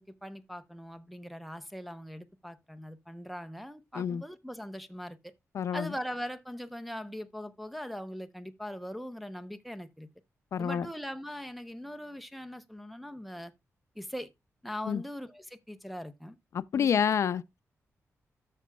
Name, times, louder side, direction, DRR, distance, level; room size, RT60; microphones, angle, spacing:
voice 1, 0.0-5.3 5.7-10.1 10.6-13.5 14.0-14.3 14.6-16.3 16.7-17.1, equal, ahead, 0.7 m, -41 dB
voice 2, 5.5-5.9 10.5-10.9 14.9-15.0 16.5-17.6, left 7 dB, 60° left, 0.4 m, -28 dB
13.5 x 6.0 x 2.3 m
wide cardioid pair, 155°, 5 cm